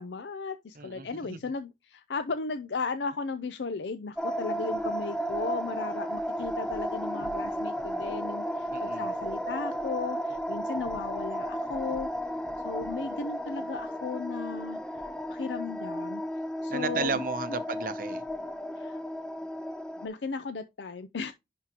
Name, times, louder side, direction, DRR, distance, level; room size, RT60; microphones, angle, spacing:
voice 1, 0.0-12.1 12.6-14.8 15.3-16.2 16.6-17.2 18.8-19.0 20.0-21.3, left 4 dB, 85° left, 0.6 m, -35 dB
voice 2, 0.8-1.4 8.7-9.0 16.7-18.2, right 4 dB, 50° right, 0.7 m, -33 dB
sound 1, 4.2-20.1, equal, 5° left, 0.4 m, -34 dB
10.5 x 3.7 x 2.9 m
head